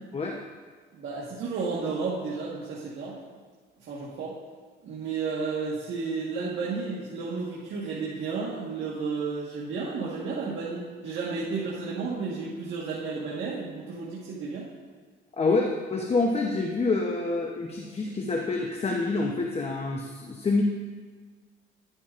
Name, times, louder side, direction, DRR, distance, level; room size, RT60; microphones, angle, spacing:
voice 1, 0.9-3.1 3.9-4.3 4.8-14.6, right 4 dB, 75° right, -7 dB, 1.5 m, -32 dB
voice 2, 15.4-20.6, left 3 dB, 30° left, 1 dB, 0.8 m, -27 dB
10.5 x 9.8 x 2.5 m, 1.5 s
cardioid pair, 90°, 20 cm